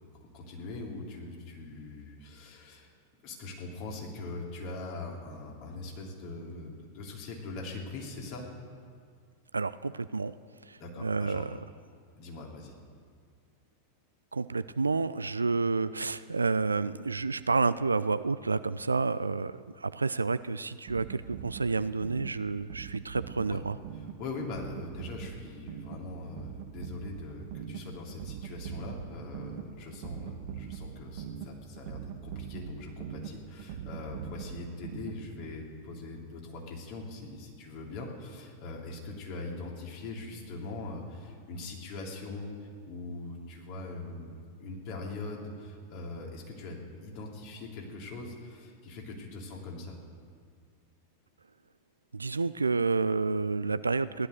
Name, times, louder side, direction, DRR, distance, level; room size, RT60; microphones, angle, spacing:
voice 1, 0.3-2.9 3.2-8.4 10.8-11.4 12.2-12.8 23.5-23.6 23.9-42.5 42.8-44.3 44.6-50.0, left 2 dB, 45° left, -1 dB, 2.9 m, -41 dB
voice 2, 9.5-10.3 10.7-11.5 14.3-23.8 52.1-54.3, right 4 dB, 80° right, 14 dB, 0.3 m, -29 dB
sound 1, 20.9-35.5, right 8 dB, 50° right, 0.8 m, -43 dB
16.0 x 11.5 x 6.5 m, 2.1 s
figure-of-eight pair, 90°, 0 cm